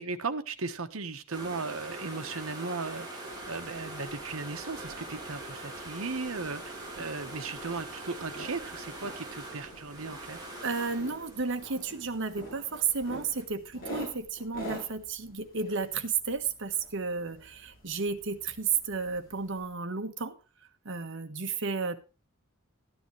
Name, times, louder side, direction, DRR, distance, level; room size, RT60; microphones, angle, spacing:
voice 1, 0.0-3.1 3.5-10.4, right 4 dB, 85° right, 1.2 m, -36 dB
sound 1, 1.3-13.4, right 2 dB, 20° right, 4.6 m, -43 dB
sound 2, 3.2-19.7, right 1 dB, 45° left, 6.9 m, -48 dB
voice 2, 10.6-20.4 20.8-22.0, right 5 dB, 65° right, 1.4 m, -32 dB
14.0 x 10.0 x 3.1 m
head